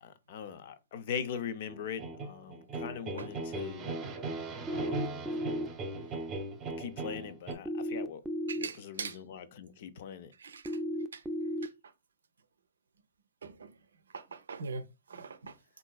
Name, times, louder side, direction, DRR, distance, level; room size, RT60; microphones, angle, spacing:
voice 1, 0.0-4.0 4.7-5.3 6.8-8.2 8.6-10.3, left 8 dB, 55° left, 0.5 m, -41 dB
sound 1, 1.7-7.5, right 3 dB, 25° right, 0.8 m, -38 dB
sound 2, 4.7-5.7 7.6-8.7 10.6-11.7, equal, 5° right, 0.4 m, -34 dB
voice 2, 8.5-9.2 10.4-10.6 11.1-11.2 13.4-13.7 14.1-14.8 15.1-15.5, right 4 dB, 75° right, 0.5 m, -41 dB
3.6 x 2.6 x 2.3 m
figure-of-eight pair, 110°, 0 cm